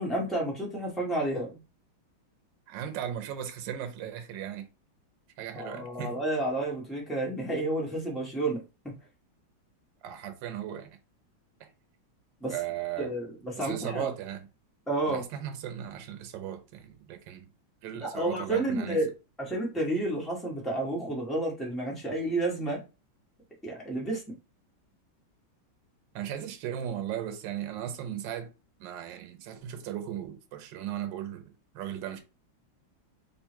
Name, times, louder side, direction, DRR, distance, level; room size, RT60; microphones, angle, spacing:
voice 1, 0.0-1.6 5.5-8.6 12.4-12.5 13.0-14.1 14.9-15.2 18.0-19.1 19.4-22.8 23.6-24.2, right 1 dB, ahead, 0.9 m, -30 dB
voice 2, 2.7-4.7 5.4-6.1 10.0-11.0 11.6-11.7 12.5-13.1 13.6-14.5 15.1-17.5 17.8-19.0 26.1-28.5 28.8-32.2, right 10 dB, 70° right, 1.3 m, -37 dB
3.6 x 2.3 x 4.4 m
omnidirectional pair, 2.2 m